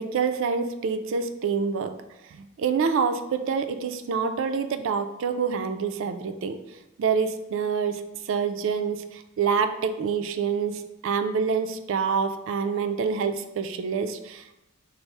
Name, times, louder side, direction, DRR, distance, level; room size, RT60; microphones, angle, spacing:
voice 1, 0.0-1.9 2.2-6.6 7.0-14.6, right 6 dB, 65° right, 9 dB, 0.3 m, -27 dB
5.3 x 2.0 x 4.5 m, 0.93 s
head